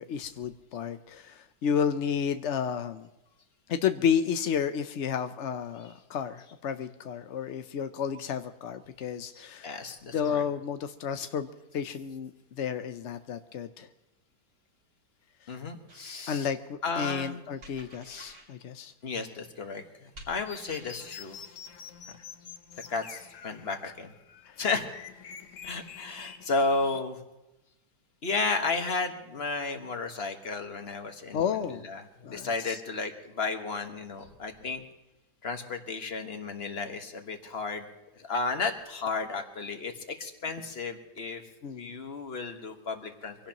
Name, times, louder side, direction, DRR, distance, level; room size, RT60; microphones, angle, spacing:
voice 1, 0.0-3.1 3.7-9.8 10.1-11.5 11.7-12.3 12.6-13.9 16.3-18.9 24.5-24.6 31.3-31.8 32.2-32.8 41.6-41.9, left 7 dB, 70° left, 9 dB, 0.6 m, -31 dB
voice 2, 9.3-10.4 11.1-11.3 15.5-16.5 16.8-17.5 19.0-21.4 22.9-24.1 24.6-24.9 25.6-27.2 28.2-34.8 35.4-37.9 38.1-41.4 41.7-43.3, left 3 dB, 35° left, 6 dB, 1.5 m, -33 dB
sound 1, 15.9-16.2 17.6-18.5 20.1-21.1, right 1 dB, 65° right, 3.2 m, -50 dB
sound 2, 20.4-27.0, left 7 dB, 55° left, 1.0 m, -47 dB
24.5 x 17.0 x 3.0 m, 0.96 s
omnidirectional pair, 2.0 m